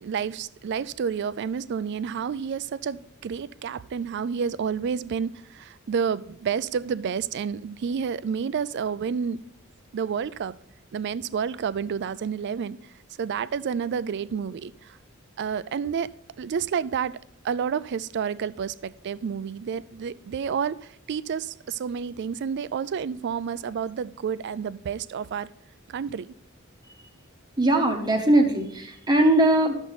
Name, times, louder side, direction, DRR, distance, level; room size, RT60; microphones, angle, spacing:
voice 1, 0.0-9.4 9.9-10.6 10.9-12.8 13.2-15.0 15.4-16.1 16.4-17.2 17.4-25.5 25.9-26.3, right 6 dB, 50° right, 17 dB, 0.3 m, -30 dB
voice 2, 27.6-29.8, right 1 dB, 20° right, 3 dB, 0.9 m, -20 dB
11.0 x 7.1 x 4.0 m, 0.70 s
head